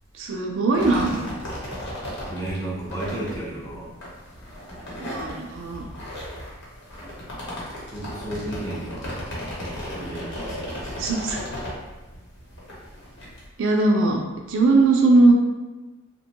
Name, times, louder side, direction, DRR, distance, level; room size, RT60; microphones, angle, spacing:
voice 1, 0.1-1.2 5.0-5.9 11.0-11.4 13.6-14.2 14.5-15.3, right 3 dB, 60° right, 0 dB, 0.4 m, -19 dB
sound 1, 0.7-13.4, equal, 55° left, 0.9 m, -35 dB
voice 2, 2.3-3.9 7.9-9.3 10.0-11.0, right 1 dB, 15° left, -6 dB, 0.7 m, -33 dB
2.9 x 2.1 x 2.9 m, 1.2 s
head